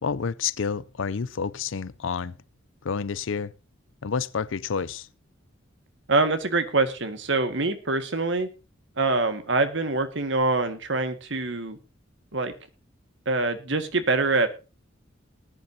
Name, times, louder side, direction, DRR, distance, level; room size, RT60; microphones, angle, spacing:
voice 1, 0.0-2.4 2.8-3.5 4.0-5.1, left 6 dB, 70° left, 0.5 m, -29 dB
voice 2, 6.1-8.5 9.0-11.8 12.3-12.5 13.3-14.5, right 3 dB, 65° right, 1.9 m, -24 dB
19.5 x 10.5 x 2.8 m
head